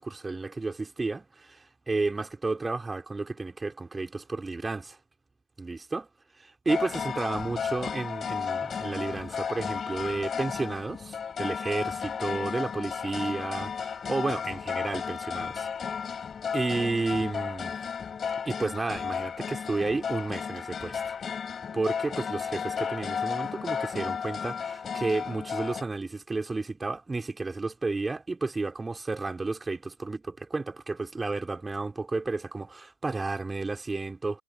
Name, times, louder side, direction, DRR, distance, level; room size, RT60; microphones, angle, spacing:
voice 1, 0.0-5.0 5.6-6.0 6.4-15.7 16.5-17.8 18.5-21.2 21.7-34.4, right 3 dB, 10° right, 3.9 m, -32 dB
sound 1, 6.7-25.8, left 7 dB, 20° left, 3.4 m, -33 dB
figure-of-eight pair, 90°, 0 cm